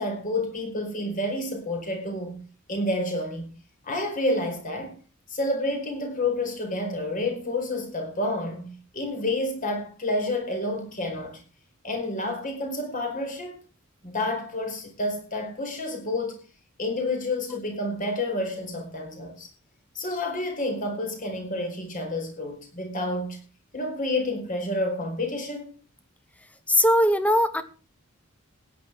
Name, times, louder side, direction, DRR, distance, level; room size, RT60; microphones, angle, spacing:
voice 1, 0.0-2.4 2.7-3.5 3.8-5.0 5.3-11.4 11.8-13.5 14.0-16.4 16.8-19.5 19.9-23.4 23.7-25.7, left 2 dB, 40° left, 4.8 m, -29 dB
voice 2, 26.7-27.6, equal, 5° left, 1.3 m, -20 dB
16.0 x 10.5 x 4.7 m
head